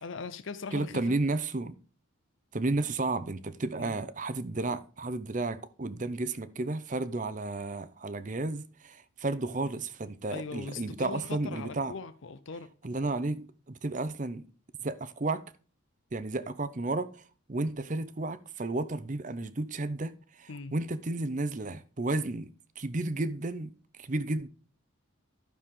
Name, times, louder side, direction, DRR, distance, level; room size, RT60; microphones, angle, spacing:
voice 1, 0.0-1.2 3.8-3.9 10.3-12.7 20.5-20.7, left 4 dB, 65° left, 0.6 m, -40 dB
voice 2, 0.7-1.8 2.5-11.9 12.8-14.5 14.8-15.4 16.1-17.2 17.5-22.5 22.8-23.7 24.0-24.5, right 2 dB, 35° right, 0.7 m, -32 dB
12.5 x 6.6 x 3.7 m
head